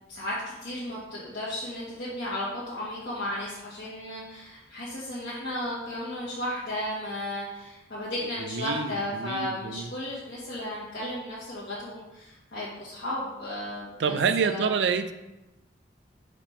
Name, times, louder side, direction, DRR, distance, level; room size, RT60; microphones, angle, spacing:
voice 1, 0.6-14.7, left 1 dB, 65° left, -9 dB, 1.5 m, -34 dB
voice 2, 8.4-9.9 14.0-15.1, right 6 dB, 75° right, 10 dB, 0.4 m, -27 dB
5.0 x 3.4 x 5.5 m, 0.98 s
head